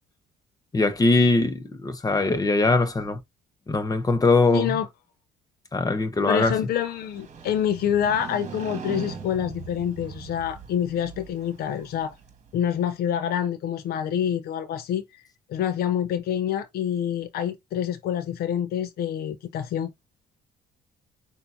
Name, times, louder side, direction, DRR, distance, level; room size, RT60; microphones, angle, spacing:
voice 1, 0.7-3.2 3.7-4.8 5.7-6.6, left 3 dB, 20° left, 0.9 m, -21 dB
voice 2, 4.5-4.9 6.3-12.1 12.5-15.2 15.5-19.9, left 9 dB, 70° left, 0.6 m, -27 dB
Motorcycle, 6.8-12.8, right 6 dB, 45° right, 1.5 m, -40 dB
6.7 x 2.7 x 2.7 m
cardioid pair, 110°, 17 cm